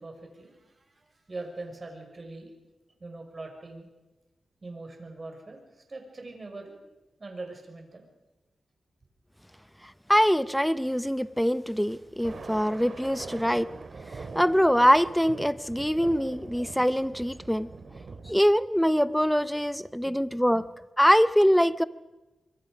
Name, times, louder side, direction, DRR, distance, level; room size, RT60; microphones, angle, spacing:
voice 1, 0.0-2.5 3.0-3.9 4.6-6.8 7.2-8.1 20.0-20.2 20.5-20.6, right 2 dB, 40° right, 5.9 m, -42 dB
voice 2, 10.1-13.7 14.1-17.7 18.3-20.6 21.0-21.8, equal, ahead, 0.8 m, -23 dB
Thunder, 12.1-18.3, right 4 dB, 55° right, 2.5 m, -43 dB
25.0 x 23.5 x 5.2 m
cardioid pair, 75°, 0 cm